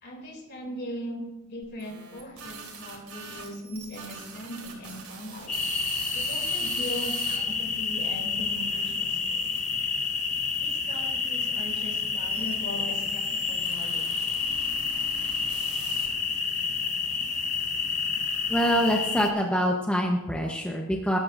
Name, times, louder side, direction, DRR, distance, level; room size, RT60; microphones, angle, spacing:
voice 1, 0.0-5.5 6.1-9.5 10.5-14.3, equal, 50° left, 1 dB, 3.0 m, -39 dB
sound 1, 1.6-7.4 8.0-9.6 10.4-16.4, right 6 dB, 80° right, 3.5 m, -43 dB
sound 2, 5.5-19.3, left 5 dB, 35° left, 1.1 m, -29 dB
voice 2, 18.5-21.2, equal, 5° left, 0 dB, 0.9 m, -25 dB
19.5 x 11.5 x 2.6 m, 0.99 s
head